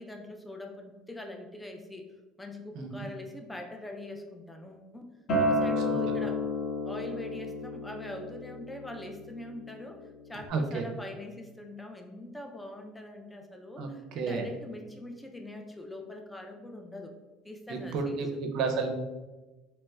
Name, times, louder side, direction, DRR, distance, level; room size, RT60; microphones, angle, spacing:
voice 1, 0.0-2.1 2.4-5.1 5.4-6.4 6.8-10.0 10.3-17.1 17.4-18.4, left 1 dB, 5° left, 3 dB, 0.3 m, -43 dB
voice 2, 2.7-3.0 10.5-10.8 13.8-14.5 17.7-18.9, right 4 dB, 60° right, 3 dB, 0.5 m, -31 dB
Acoustic guitar, 5.3-10.5, left 1 dB, 50° left, 1.0 m, -32 dB
3.3 x 2.9 x 2.2 m, 1.2 s
cardioid pair, 135°, 0 cm